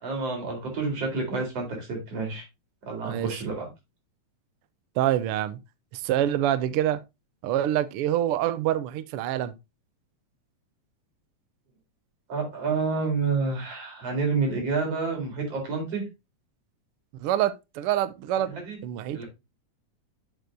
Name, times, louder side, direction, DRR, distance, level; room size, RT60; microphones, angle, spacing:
voice 1, 0.0-2.4 2.8-3.7 12.3-16.0 18.4-18.8 19.1-19.2, right 4 dB, 55° right, 5.0 m, -29 dB
voice 2, 5.0-5.6 5.9-7.0 7.4-9.5 17.2-18.5 18.8-19.2, right 12 dB, 80° right, 1.3 m, -26 dB
8.2 x 8.1 x 2.6 m
omnidirectional pair, 3.4 m